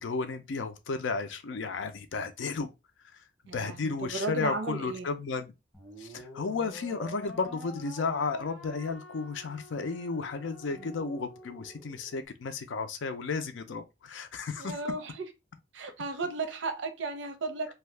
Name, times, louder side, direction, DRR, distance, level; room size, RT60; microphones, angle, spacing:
voice 1, 0.0-2.7 3.5-5.5 6.0-14.8, left 4 dB, 90° left, 0.5 m, -33 dB
voice 2, 3.5-5.1 10.8-10.9 14.6-15.3 15.7-17.7, right 3 dB, 80° right, 0.6 m, -35 dB
sound 1, 5.7-12.3, right 1 dB, ahead, 0.7 m, -48 dB
2.7 x 2.3 x 3.2 m
head